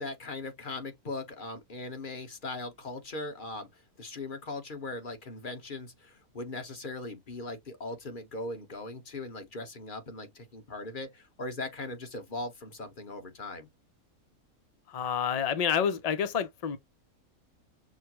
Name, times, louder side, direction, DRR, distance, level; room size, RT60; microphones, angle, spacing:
voice 1, 0.0-13.7, left 2 dB, 35° left, 1.3 m, -39 dB
voice 2, 14.9-16.8, left 8 dB, 70° left, 0.3 m, -28 dB
6.3 x 2.2 x 2.9 m
omnidirectional pair, 1.5 m